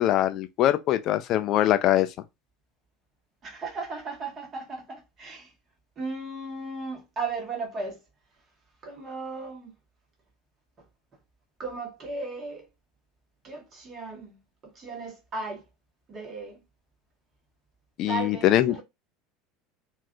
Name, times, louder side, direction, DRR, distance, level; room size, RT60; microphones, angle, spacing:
voice 1, 0.0-2.1 18.0-18.7, left 13 dB, 45° left, 0.3 m, -22 dB
voice 2, 3.4-5.5 6.0-8.0 8.8-9.7 10.8-10.9 11.6-12.7 13.4-15.6 16.1-16.6 18.1-18.8, right 3 dB, 35° right, 1.2 m, -36 dB
3.3 x 2.4 x 2.2 m
figure-of-eight pair, 70°, 0 cm